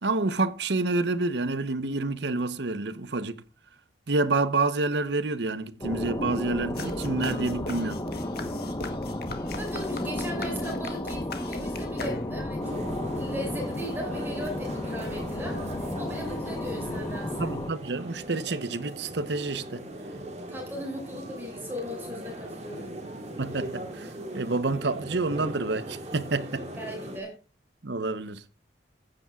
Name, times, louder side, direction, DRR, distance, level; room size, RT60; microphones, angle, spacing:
voice 1, 0.0-3.4 4.1-8.0 17.4-19.8 23.4-26.7 27.8-28.4, right 3 dB, 65° right, 0.9 m, -28 dB
sound 1, 5.8-17.7, left 1 dB, 20° left, 1.0 m, -33 dB
sound 2, 6.8-12.6, left 2 dB, 55° left, 1.8 m, -39 dB
voice 2, 9.5-12.8 13.1-15.7 16.0-17.5 20.5-22.9 26.8-27.4, equal, 10° right, 5.6 m, -38 dB
sound 3, 12.6-27.2, right 1 dB, 35° right, 2.8 m, -39 dB
15.5 x 9.9 x 2.4 m
head